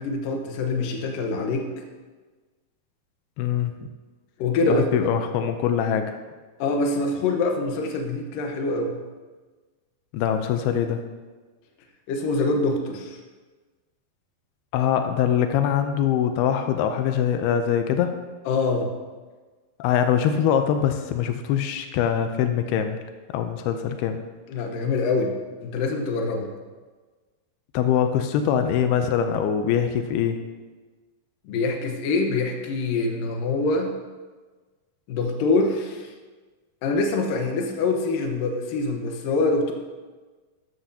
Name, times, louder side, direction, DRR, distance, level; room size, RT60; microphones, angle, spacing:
voice 1, 0.0-1.7 4.4-4.9 6.6-9.0 12.1-13.2 18.5-18.9 24.5-25.3 25.6-26.5 31.5-33.9 35.1-36.1 36.8-39.7, left 3 dB, 70° left, 3 dB, 2.7 m, -24 dB
voice 2, 3.4-3.7 4.7-6.2 10.1-11.0 14.7-18.1 19.8-23.0 23.3-24.2 27.7-30.4, left 8 dB, 90° left, 7 dB, 2.7 m, -23 dB
14.0 x 12.5 x 2.8 m, 1.3 s
omnidirectional pair, 4.4 m